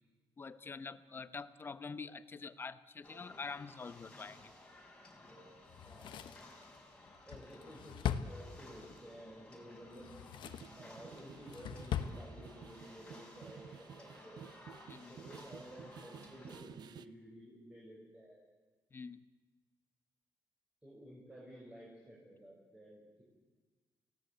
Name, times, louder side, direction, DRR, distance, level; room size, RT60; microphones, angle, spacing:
voice 1, 0.4-4.5 14.9-15.2 18.9-19.2, left 4 dB, 25° left, 13 dB, 1.0 m, -46 dB
sound 1, 3.0-16.6, left 1 dB, 10° left, 5.2 m, -57 dB
Drawer open or close, 5.7-9.0 9.9-10.8 11.2-12.2 12.5-12.6, left 9 dB, 75° left, 1.2 m, -41 dB
voice 2, 7.3-10.1 10.8-14.4 15.1-18.4 20.8-23.2, equal, 10° right, -4 dB, 6.6 m, -53 dB
sound 2, 10.4-17.1, right 8 dB, 60° right, 0.9 m, -54 dB
30.0 x 17.5 x 8.1 m, 1.3 s
wide cardioid pair, 160°, 8 cm